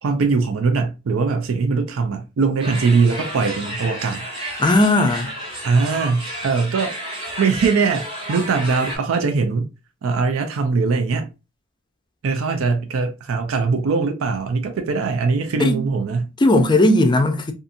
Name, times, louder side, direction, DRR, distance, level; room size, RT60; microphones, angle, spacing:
voice 1, 0.0-4.3 5.6-7.0 7.4-9.7 10.0-11.3 12.2-16.3, right 4 dB, 90° right, 0.4 m, -21 dB
sound 1, 2.6-9.0, right 1 dB, 25° right, 0.8 m, -32 dB
voice 2, 4.6-5.3 15.6-15.8 16.4-17.5, left 1 dB, 20° left, 0.4 m, -16 dB
2.6 x 2.5 x 2.5 m
head